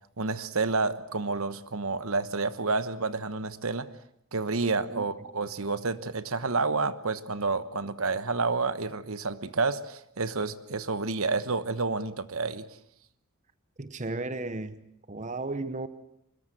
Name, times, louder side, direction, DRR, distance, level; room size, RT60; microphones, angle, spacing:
voice 1, 0.2-3.9 4.3-12.6, right 3 dB, 70° right, 13 dB, 1.2 m, -29 dB
voice 2, 13.8-14.8 15.1-15.9, right 2 dB, 35° right, 12 dB, 0.9 m, -34 dB
24.0 x 21.5 x 7.9 m, 0.74 s
head